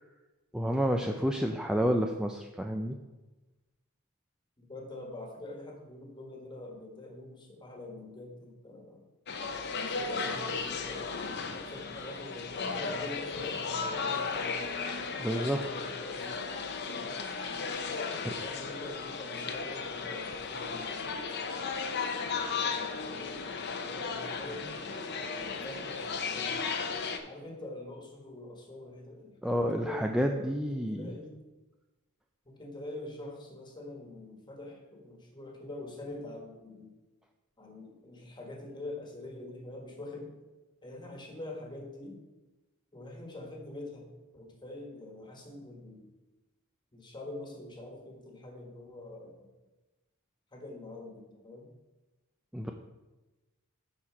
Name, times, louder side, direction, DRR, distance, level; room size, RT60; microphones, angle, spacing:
voice 1, 0.5-3.0 15.2-15.6 18.2-18.3 29.4-31.1 52.5-52.7, equal, 5° right, 3 dB, 0.4 m, -29 dB
voice 2, 4.6-9.1 9.7-14.6 15.3-16.5 16.9-17.2 18.1-21.4 22.9-23.5 23.8-25.1 25.5-26.7 27.2-31.4 32.4-36.9 37.6-40.3 40.8-42.2 42.9-46.1 46.9-49.5 50.5-51.7, left 2 dB, 20° left, 1 dB, 1.5 m, -45 dB
sound 1, 9.3-27.2, left 5 dB, 50° left, 0.7 m, -35 dB
10.5 x 4.4 x 4.9 m, 1.1 s
head